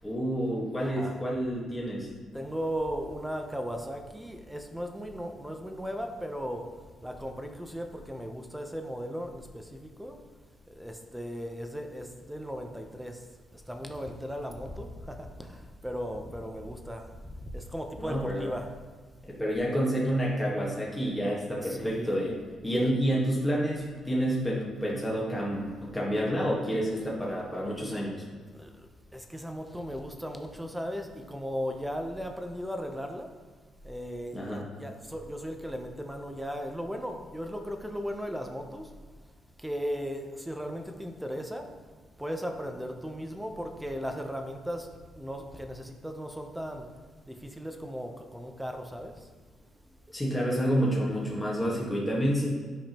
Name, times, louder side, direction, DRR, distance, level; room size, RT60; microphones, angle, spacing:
voice 1, 0.0-2.1 18.0-18.5 19.3-22.4 22.6-28.2 34.3-34.6 50.1-52.5, equal, 10° left, -5 dB, 1.5 m, -29 dB
voice 2, 0.8-1.2 2.3-6.6 7.0-10.2 10.7-13.2 13.5-17.0 17.4-18.7 21.6-22.2 22.6-22.9 28.5-28.7 29.1-33.3 33.8-38.9 39.6-41.6 42.2-44.9 45.2-46.9 47.3-49.1, equal, 5° right, 4 dB, 0.7 m, -37 dB
8.6 x 5.0 x 3.0 m, 1.5 s
cardioid pair, 90°, 0 cm